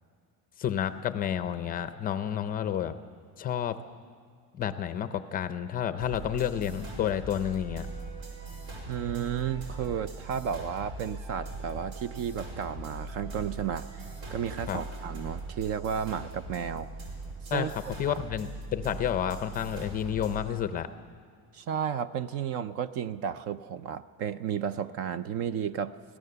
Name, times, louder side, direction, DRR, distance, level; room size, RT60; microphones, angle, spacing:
voice 1, 0.6-2.9 3.4-3.8 4.5-7.9 14.7-14.8 17.5-17.7 18.0-20.9, left 9 dB, 25° left, 11 dB, 0.5 m, -30 dB
sound 1, 6.0-20.4, right 2 dB, 65° right, 4.8 m, -41 dB
voice 2, 8.9-16.9 17.4-17.7 18.1-18.2 21.5-26.0, right 8 dB, 40° right, 15 dB, 0.5 m, -33 dB
24.0 x 16.5 x 6.8 m, 2.2 s
cardioid pair, 180°, 36 cm